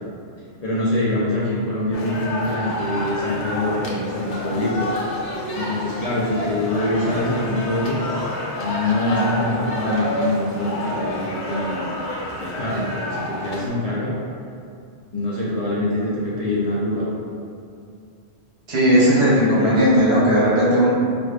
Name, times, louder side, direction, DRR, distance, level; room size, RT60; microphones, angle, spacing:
voice 1, 0.6-4.9 5.5-8.0 8.6-11.9 12.4-14.1 15.1-17.1 19.2-20.2, left 1 dB, 45° left, -8 dB, 0.5 m, -24 dB
sound 1, 1.9-13.7, left 1 dB, 90° left, 1.0 m, -29 dB
voice 2, 18.7-20.9, equal, 65° right, -8 dB, 1.0 m, -16 dB
4.8 x 2.5 x 2.3 m, 2.5 s
omnidirectional pair, 1.2 m